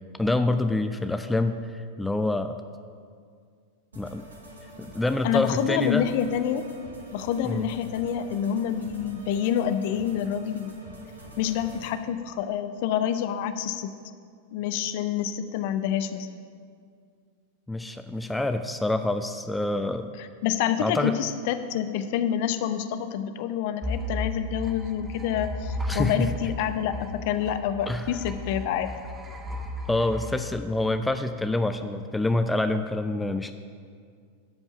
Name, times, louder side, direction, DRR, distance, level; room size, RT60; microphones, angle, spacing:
voice 1, 0.2-2.5 4.0-4.2 4.8-6.1 7.4-7.7 17.7-20.1 20.8-21.1 25.9-26.3 27.9-28.0 29.9-33.5, left 2 dB, 5° left, 8 dB, 0.4 m, -26 dB
sound 1, 3.9-11.9, right 1 dB, 75° right, 2.1 m, -45 dB
voice 2, 5.2-6.6 7.1-10.7 11.4-13.9 14.5-16.3 20.2-27.0 27.2-28.9, left 9 dB, 50° left, 10 dB, 0.6 m, -27 dB
sound 2, 23.8-31.3, left 1 dB, 15° right, 0.9 m, -34 dB
12.0 x 5.4 x 6.9 m, 2.1 s
figure-of-eight pair, 90°, 0 cm